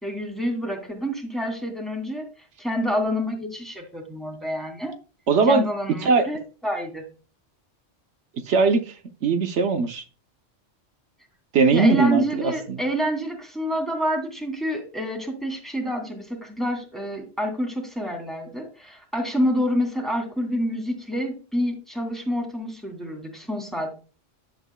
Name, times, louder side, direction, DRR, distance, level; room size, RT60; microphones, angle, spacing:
voice 1, 0.0-2.3 2.6-4.9 5.5-7.0 11.7-23.9, equal, ahead, 2 dB, 2.6 m, -28 dB
voice 2, 5.3-5.7 6.0-6.3 8.5-10.0 11.5-12.8, right 4 dB, 75° right, 6 dB, 1.1 m, -20 dB
11.0 x 8.1 x 2.2 m, 0.34 s
omnidirectional pair, 1.2 m